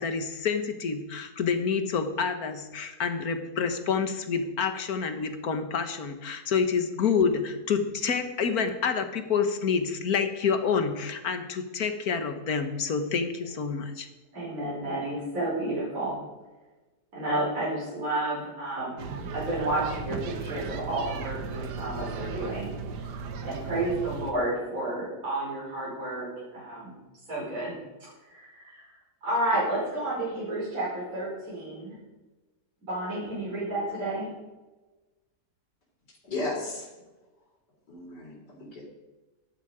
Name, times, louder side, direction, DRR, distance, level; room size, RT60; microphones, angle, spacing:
voice 1, 0.0-14.1, left 6 dB, 60° left, 8 dB, 1.7 m, -28 dB
voice 2, 14.3-16.2 17.1-19.1 19.3-22.7 23.4-26.9 27.3-27.7 28.0-28.9 29.2-32.0 32.9-34.3, right 1 dB, 50° right, -7 dB, 5.4 m, -31 dB
sound 1, 19.0-24.3, right 4 dB, 80° right, 1.6 m, -36 dB
voice 3, 36.2-36.9 37.9-38.8, left 2 dB, 80° left, -2 dB, 4.6 m, -34 dB
13.5 x 11.5 x 5.0 m, 1.1 s
omnidirectional pair, 1.8 m